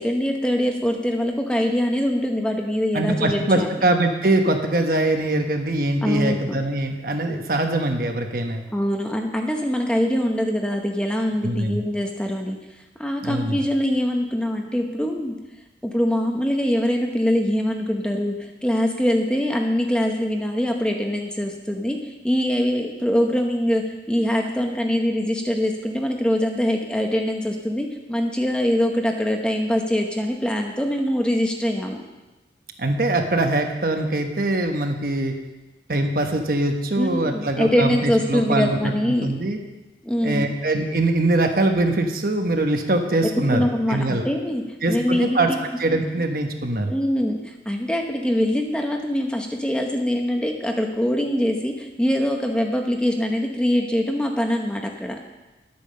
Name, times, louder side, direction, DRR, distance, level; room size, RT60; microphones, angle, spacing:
voice 1, 0.0-3.7 6.0-6.6 8.7-12.6 13.0-15.3 15.8-32.0 37.0-39.3 40.0-40.5 43.5-44.6 44.9-45.6 46.9-55.2, equal, 5° left, 2 dB, 0.9 m, -23 dB
voice 2, 2.9-8.6 11.4-11.8 13.2-13.6 32.8-35.4 35.9-39.6 40.2-44.3 44.8-45.5 45.8-46.9, right 2 dB, 50° right, 4 dB, 1.1 m, -22 dB
10.5 x 8.5 x 6.6 m, 1.1 s
head